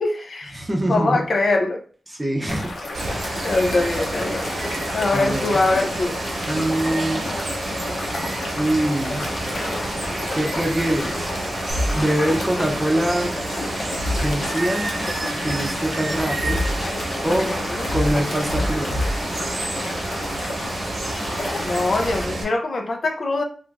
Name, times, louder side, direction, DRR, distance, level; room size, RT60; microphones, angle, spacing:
voice 1, 0.0-1.8 3.4-4.4 4.9-6.1 17.5-17.9 21.6-23.4, left 2 dB, 55° left, 4 dB, 0.5 m, -23 dB
voice 2, 0.5-1.2 2.1-2.7 3.4-3.5 5.1-5.6 6.5-7.2 8.5-9.3 10.3-11.4 11.9-13.4 14.2-14.9 15.3-16.6 17.2-17.6 17.9-19.0 19.5-19.7, right 1 dB, 15° right, 1 dB, 0.6 m, -24 dB
sound 1, 2.5-22.3, left 2 dB, 75° left, 0.8 m, -31 dB
Water, 2.9-22.4, right 2 dB, 75° right, 1.0 m, -29 dB
sound 2, 11.7-20.1 20.4-21.2, left 1 dB, 30° left, 1.1 m, -29 dB
3.0 x 2.4 x 3.4 m, 0.43 s
wide cardioid pair, 155°, 0 cm